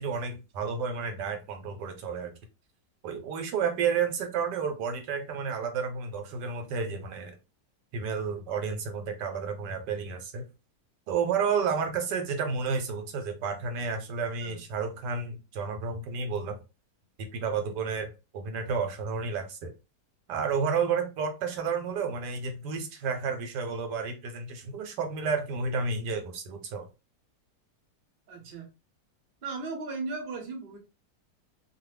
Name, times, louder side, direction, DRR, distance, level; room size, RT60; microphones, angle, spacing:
voice 1, 0.0-2.3 3.0-7.3 7.9-10.4 11.1-16.6 17.2-18.1 18.3-19.7 20.3-26.9, right 5 dB, 85° right, 1.3 m, -31 dB
voice 2, 28.3-28.7 29.4-30.8, right 3 dB, 45° right, 0.8 m, -36 dB
2.6 x 2.4 x 3.1 m
omnidirectional pair, 1.8 m